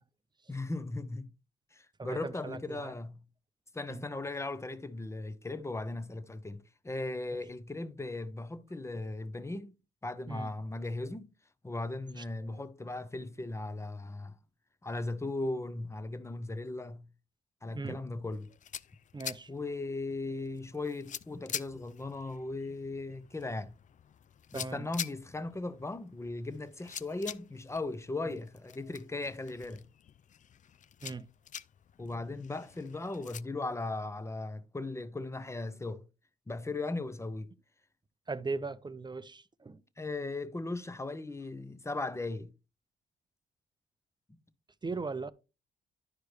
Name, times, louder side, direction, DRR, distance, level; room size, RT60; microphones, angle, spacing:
voice 1, 0.5-1.3 1.7-3.2 3.7-9.7 10.0-11.3 11.6-14.3 14.8-17.1 17.6-18.5 19.5-23.7 24.5-29.8 32.0-36.0 36.5-37.5 40.0-42.5, left 2 dB, 15° left, 0.8 m, -37 dB
voice 2, 2.0-2.9 3.9-4.1 10.3-10.5 12.1-12.6 17.7-18.0 19.1-19.5 24.5-24.9 28.2-28.4 31.0-31.3 38.3-39.8 44.8-45.3, right 3 dB, 20° right, 0.6 m, -39 dB
sound 1, 18.3-33.4, left 9 dB, 40° left, 0.4 m, -46 dB
10.5 x 4.8 x 3.2 m
supercardioid pair, 55°, 20 cm